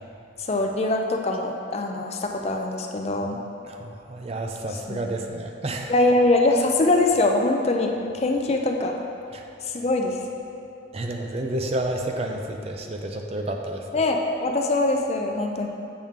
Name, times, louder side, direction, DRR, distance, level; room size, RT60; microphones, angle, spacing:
voice 1, 0.5-3.4 4.9-5.1 5.9-8.9 9.7-10.2 13.9-15.7, left 2 dB, 30° left, 2 dB, 0.4 m, -23 dB
voice 2, 3.7-5.9 9.3-9.4 10.9-13.8, right 1 dB, 30° right, 3 dB, 0.4 m, -30 dB
7.2 x 6.0 x 3.6 m, 2.6 s
head